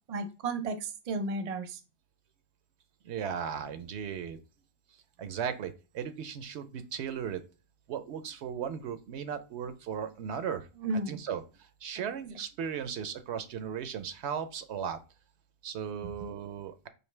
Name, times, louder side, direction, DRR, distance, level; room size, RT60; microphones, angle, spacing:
voice 1, 0.1-1.8 10.8-11.2 16.0-16.3, right 2 dB, 45° right, 8 dB, 0.6 m, -34 dB
voice 2, 3.0-4.4 5.2-7.4 7.9-10.7 11.1-15.0 15.6-16.9, right 8 dB, 80° right, 10 dB, 0.9 m, -36 dB
4.9 x 2.7 x 3.2 m, 0.32 s
omnidirectional pair, 1.1 m